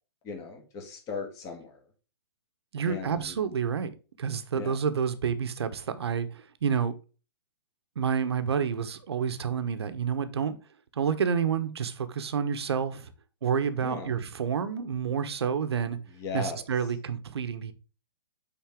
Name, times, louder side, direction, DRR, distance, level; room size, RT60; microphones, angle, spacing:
voice 1, 0.2-1.8 2.8-3.4 4.6-4.8 13.8-14.1 16.1-16.6, left 5 dB, 25° left, 2.0 m, -37 dB
voice 2, 2.7-3.9 4.2-6.9 8.0-10.6 10.9-13.1 13.4-16.0 16.3-17.7, right 7 dB, 80° right, 1.1 m, -29 dB
9.1 x 4.1 x 3.7 m
hypercardioid pair, 150°, 13 cm